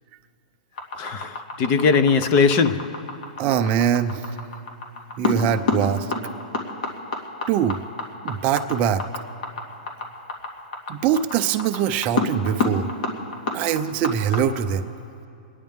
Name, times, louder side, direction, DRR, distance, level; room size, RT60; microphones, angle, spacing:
sound 1, 0.8-14.4, left 3 dB, 70° left, 2.6 m, -28 dB
voice 1, 1.0-3.0, left 5 dB, 35° left, 0.7 m, -20 dB
voice 2, 3.4-4.2 5.2-6.1 7.5-7.8 8.2-9.0 10.9-12.9 13.5-14.9, right 9 dB, 30° right, 0.5 m, -22 dB
29.5 x 10.5 x 3.6 m
hypercardioid pair, 150°, 5 cm